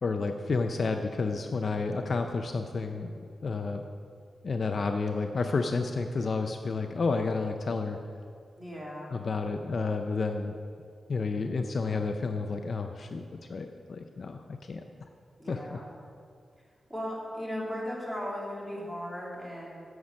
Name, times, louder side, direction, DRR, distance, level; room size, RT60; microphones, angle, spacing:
voice 1, 0.0-3.9 4.4-8.0 9.1-10.5 11.1-13.2 13.5-14.8 15.5-15.8, left 4 dB, 45° left, 5 dB, 0.4 m, -31 dB
voice 2, 8.6-9.1 15.4-15.9 16.9-19.8, equal, 10° right, -5 dB, 2.3 m, -37 dB
9.4 x 7.2 x 6.3 m, 2.3 s
wide cardioid pair, 170°, 0 cm